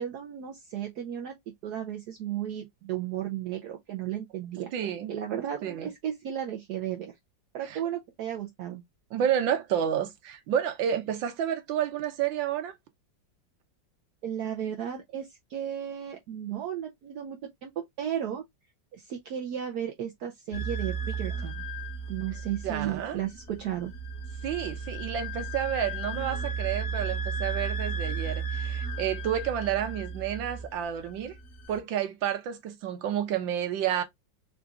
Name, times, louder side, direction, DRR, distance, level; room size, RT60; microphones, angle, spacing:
voice 1, 0.0-1.4 1.6-4.7 5.1-7.1 7.5-8.8 14.2-17.7 18.0-18.4 18.9-21.6 22.1-23.9, right 10 dB, 70° right, 1.1 m, -34 dB
voice 2, 4.7-5.2 5.6-5.9 7.7-7.8 9.1-12.7 22.6-23.2 24.4-31.4 31.7-34.0, right 9 dB, 85° right, 1.6 m, -30 dB
sound 1, 20.5-31.8, right 4 dB, 55° left, 1.0 m, -34 dB
3.9 x 2.5 x 3.4 m
omnidirectional pair, 2.0 m